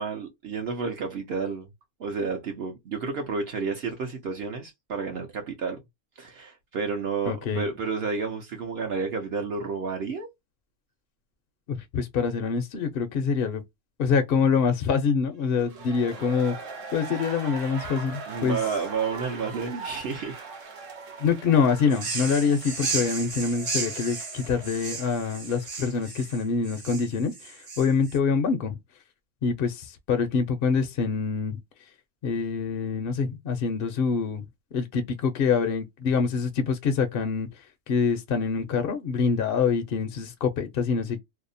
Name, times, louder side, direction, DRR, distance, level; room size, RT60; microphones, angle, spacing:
voice 1, 0.0-1.7 2.0-5.8 6.2-10.3 18.3-20.4, right 5 dB, 60° right, 0.8 m, -31 dB
voice 2, 7.3-7.6 11.7-13.6 14.0-16.5 16.9-18.6 21.2-28.8 29.4-31.6 32.2-34.4 34.7-37.5 37.9-41.2, left 5 dB, 60° left, 0.7 m, -25 dB
sound 1, 15.5-26.4 26.6-26.7, right 5 dB, 85° right, 1.2 m, -41 dB
sound 2, 21.9-28.2, right 4 dB, 40° right, 0.5 m, -34 dB
2.7 x 2.0 x 2.5 m
omnidirectional pair, 1.3 m